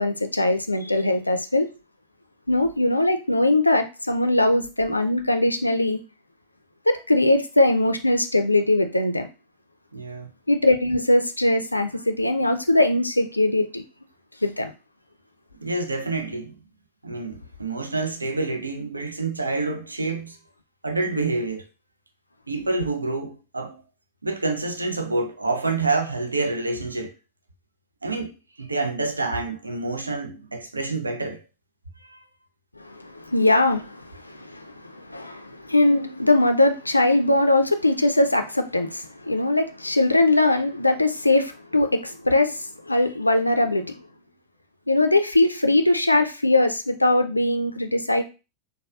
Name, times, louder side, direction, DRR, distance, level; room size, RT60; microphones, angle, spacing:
voice 1, 0.0-1.7 2.5-6.0 6.9-9.3 10.5-13.8 14.4-14.7 32.8-43.9 44.9-48.2, left 2 dB, 85° left, 0.3 m, -21 dB
voice 2, 9.9-10.3 15.5-16.5 17.0-20.4 20.8-21.7 22.5-23.8 24.2-27.1 28.0-31.4 32.1-32.2, right 3 dB, 80° right, 0.5 m, -27 dB
4.1 x 2.2 x 2.3 m
figure-of-eight pair, 90°, 0 cm